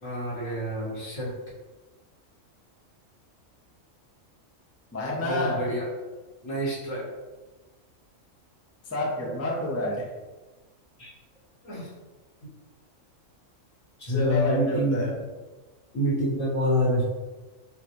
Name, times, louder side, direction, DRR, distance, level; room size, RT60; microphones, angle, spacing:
voice 1, 0.0-1.3 5.2-5.9 6.4-7.2 11.0-11.1 11.6-11.9 14.0-15.1 15.9-17.0, equal, 75° left, -8 dB, 2.1 m, -27 dB
voice 2, 4.9-5.6 8.8-10.1 14.1-15.2, left 1 dB, 15° left, -3 dB, 0.5 m, -28 dB
6.4 x 2.3 x 3.0 m, 1.2 s
omnidirectional pair, 1.4 m